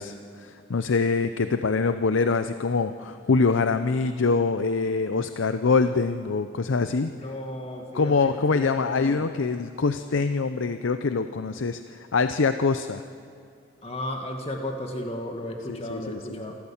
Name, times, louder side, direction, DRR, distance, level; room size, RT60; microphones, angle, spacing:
voice 1, 0.0-7.1 7.9-13.0 15.7-16.4, left 4 dB, 90° left, 10 dB, 0.6 m, -24 dB
voice 2, 7.0-9.3 13.8-16.6, left 1 dB, 30° left, 2 dB, 2.1 m, -34 dB
27.5 x 13.5 x 7.2 m, 2.5 s
head